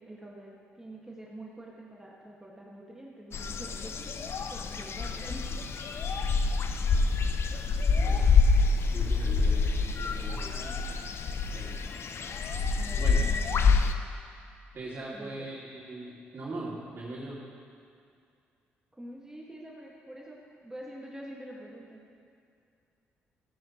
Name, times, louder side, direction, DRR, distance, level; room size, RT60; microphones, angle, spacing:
voice 1, 0.0-5.5 10.6-10.7 12.8-13.8 15.1-15.5 19.0-22.0, right 1 dB, 10° right, -4 dB, 1.9 m, -46 dB
sound 1, 3.3-13.9, left 4 dB, 55° left, 0.6 m, -27 dB
voice 2, 7.9-8.3 8.9-10.7 11.5-11.7 13.0-13.2 14.7-17.4, right 2 dB, 45° right, -8 dB, 2.7 m, -40 dB
14.0 x 10.5 x 3.1 m, 2.4 s
hypercardioid pair, 50°, 5 cm